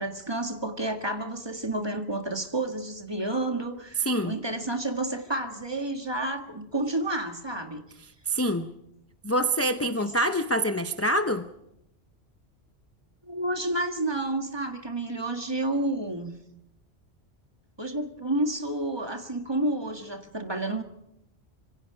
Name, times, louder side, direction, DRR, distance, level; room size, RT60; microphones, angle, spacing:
voice 1, 0.0-7.8 10.0-10.1 13.2-16.3 17.8-20.8, right 1 dB, 20° right, 5 dB, 1.8 m, -30 dB
voice 2, 8.3-8.7 9.2-11.5, equal, 15° left, 8 dB, 0.6 m, -25 dB
26.5 x 24.0 x 5.0 m, 0.84 s
omnidirectional pair, 1.2 m